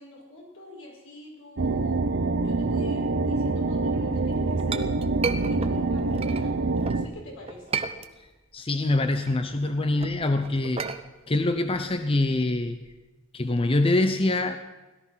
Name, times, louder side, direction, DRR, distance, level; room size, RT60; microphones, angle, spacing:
voice 1, 0.0-2.1 2.3-4.8 5.5-7.8, left 1 dB, 75° left, -2 dB, 5.7 m, -46 dB
sound 1, 1.6-7.1, right 3 dB, 60° right, 0.8 m, -25 dB
Chink clink, 4.2-7.0 7.5-8.5 8.9-13.0, right 5 dB, 30° right, 0.8 m, -34 dB
voice 2, 8.5-10.9 11.3-12.8 13.3-14.6, left 2 dB, 25° left, 8 dB, 0.7 m, -24 dB
17.5 x 13.0 x 5.7 m, 1.2 s
head